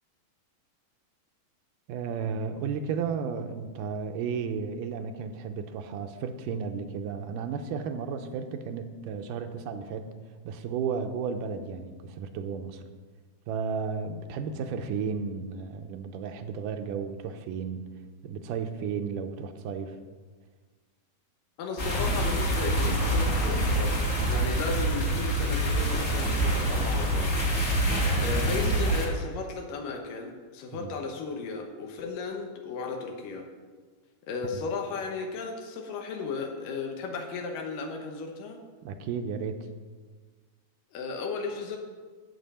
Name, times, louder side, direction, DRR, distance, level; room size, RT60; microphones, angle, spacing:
voice 1, 1.9-10.1 10.5-12.8 13.5-17.9 18.2-20.0 27.9-28.3 30.7-30.9 38.8-39.7, right 6 dB, 85° right, 7 dB, 2.3 m, -33 dB
voice 2, 21.6-24.0 24.3-27.3 28.2-33.5 34.3-38.6 40.9-41.8, left 4 dB, 85° left, 2 dB, 2.6 m, -35 dB
sound 1, 21.8-29.1, right 1 dB, 35° left, 1.2 m, -26 dB
11.0 x 8.3 x 4.2 m, 1.5 s
omnidirectional pair, 3.8 m